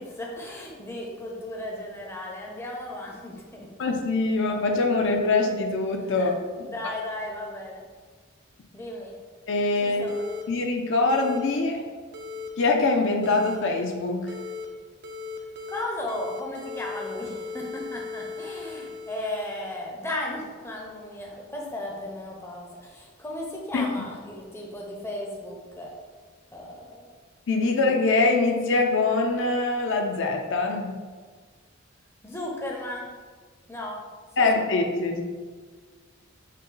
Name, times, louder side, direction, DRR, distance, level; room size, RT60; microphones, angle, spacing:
voice 1, 0.0-3.7 6.6-7.8 8.7-9.2 9.8-10.2 15.7-25.9 26.5-27.1 27.7-27.8 32.2-33.1 33.7-34.0 34.4-34.6, left 1 dB, 10° left, -1 dB, 0.6 m, -35 dB
voice 2, 3.8-6.7 9.5-10.1 10.5-11.8 12.6-14.3 23.7-23.9 27.5-31.0 34.4-35.2, left 3 dB, 60° left, 2 dB, 0.5 m, -24 dB
sound 1, 10.1-10.4 11.1-11.4 12.1-12.5 13.2-13.6 14.3-14.7 15.0-15.8 16.1-19.8, left 4 dB, 50° right, 0.5 m, -37 dB
6.4 x 2.2 x 3.8 m, 1.5 s
head